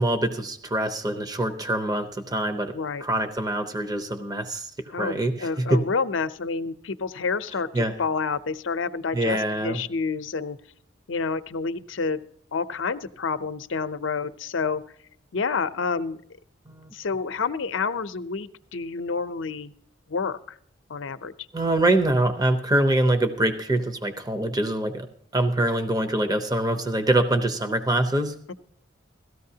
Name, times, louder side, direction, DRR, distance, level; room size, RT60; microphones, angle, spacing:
voice 1, 0.0-5.8 7.7-8.0 9.1-9.8 16.7-16.9 21.5-25.1 25.3-28.3, right 1 dB, 20° right, 7 dB, 0.7 m, -24 dB
voice 2, 2.7-3.0 4.9-10.6 11.1-12.2 12.5-14.8 15.3-16.2 16.9-19.7 20.1-20.6 20.9-21.3 28.5-28.6, left 4 dB, 70° left, 12 dB, 0.6 m, -29 dB
17.0 x 14.0 x 2.8 m, 0.66 s
head